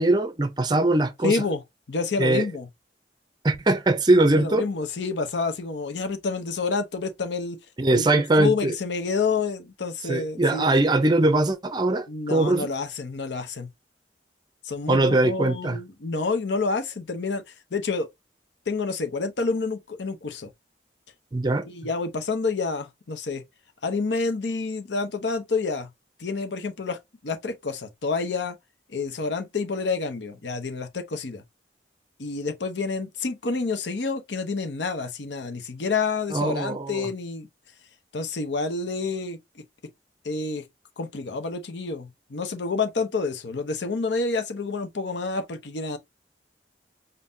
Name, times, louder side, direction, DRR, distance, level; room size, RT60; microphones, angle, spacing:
voice 1, 0.0-1.4 2.2-2.5 3.4-4.6 7.8-8.7 10.1-12.7 14.9-15.8 21.3-21.7 36.3-37.1, right 2 dB, 25° right, 0.5 m, -21 dB
voice 2, 1.2-1.6 1.9-2.7 4.4-7.6 7.9-8.0 8.4-10.7 12.1-13.7 14.6-17.4 17.7-18.1 18.7-20.5 21.6-23.4 23.8-25.9 26.2-28.6 28.9-31.4 32.2-37.5 38.1-39.4 40.2-40.6 41.0-46.0, left 4 dB, 85° left, 0.7 m, -28 dB
5.4 x 2.7 x 2.6 m
head